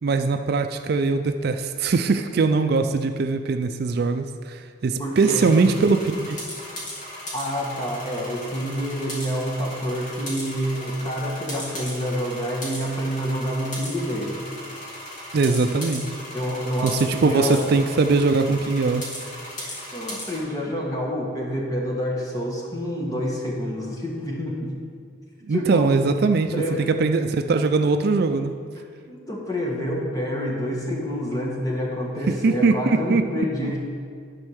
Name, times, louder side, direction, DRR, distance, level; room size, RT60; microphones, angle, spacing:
voice 1, 0.0-6.4 15.3-16.2 16.8-19.0 25.5-28.5 32.3-33.2 33.6-33.7, right 4 dB, 50° right, 7 dB, 0.4 m, -21 dB
voice 2, 5.0-5.5 7.3-14.4 16.3-17.7 19.6-24.7 25.5-25.9 26.5-26.8 29.1-33.8, equal, 20° left, -2 dB, 1.3 m, -28 dB
sound 1, 5.1-20.4, left 1 dB, 40° left, 2.4 m, -37 dB
10.5 x 4.5 x 6.3 m, 2.2 s
head